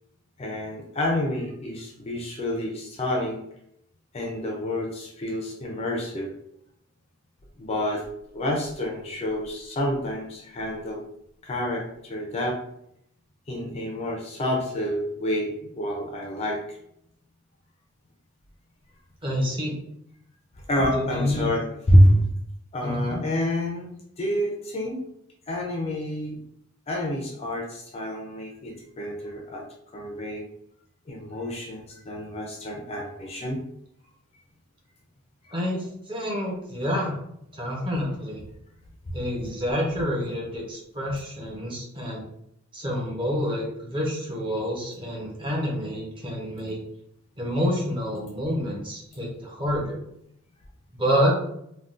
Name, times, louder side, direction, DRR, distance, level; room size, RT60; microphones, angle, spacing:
voice 1, 0.4-3.4 4.1-6.3 7.6-8.1 8.3-11.0 11.4-12.6 13.5-16.8 20.7-22.2 22.7-25.0 25.5-26.4 26.9-29.6 29.9-30.5 31.1-33.6 35.4-35.5, equal, 30° left, 0 dB, 0.4 m, -27 dB
voice 2, 19.2-19.7 20.8-21.5 22.8-23.2 35.5-37.1 37.5-38.4 39.1-42.2 42.7-46.8 47.4-50.0 51.0-51.3, equal, 25° right, -3 dB, 0.8 m, -28 dB
3.6 x 2.2 x 2.4 m, 0.74 s
head